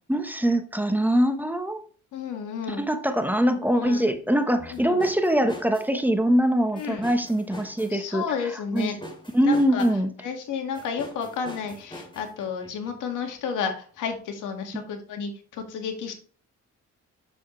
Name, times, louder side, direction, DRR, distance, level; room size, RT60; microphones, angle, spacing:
voice 1, 0.1-1.8 2.7-8.9 9.3-10.1 14.7-14.8, equal, 5° right, 7 dB, 1.1 m, -23 dB
voice 2, 2.1-2.8 3.8-4.1 4.7-5.0 6.8-7.1 7.9-9.0 9.4-9.9 10.2-16.1, left 6 dB, 85° left, 5 dB, 1.9 m, -32 dB
sound 1, 4.6-6.0 6.8-8.0 8.8-10.0 10.7-13.0 14.1-14.2, left 1 dB, 15° left, 3.0 m, -43 dB
7.6 x 6.7 x 3.2 m, 0.42 s
cardioid pair, 90°, 30 cm